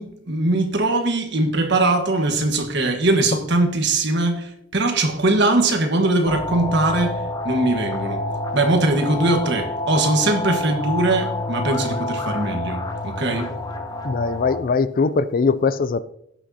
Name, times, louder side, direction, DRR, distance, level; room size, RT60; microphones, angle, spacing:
voice 1, 0.0-8.2 8.5-13.5, right 2 dB, 55° right, 1.4 m, -21 dB
sound 1, 6.3-14.6, left 2 dB, 20° left, 0.7 m, -28 dB
voice 2, 14.0-16.0, left 4 dB, 40° left, 0.4 m, -21 dB
16.5 x 6.2 x 2.8 m
head